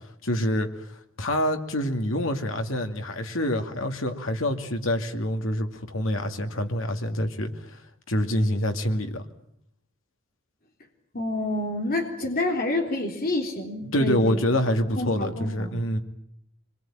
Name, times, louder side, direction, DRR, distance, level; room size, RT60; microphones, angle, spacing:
voice 1, 0.2-0.7 1.2-7.8 8.1-9.2 13.9-16.0, left 1 dB, 80° left, 5 dB, 2.4 m, -26 dB
voice 2, 11.1-14.4 15.0-15.8, left 1 dB, 50° left, 2 dB, 3.7 m, -28 dB
25.5 x 22.5 x 9.0 m, 0.71 s
head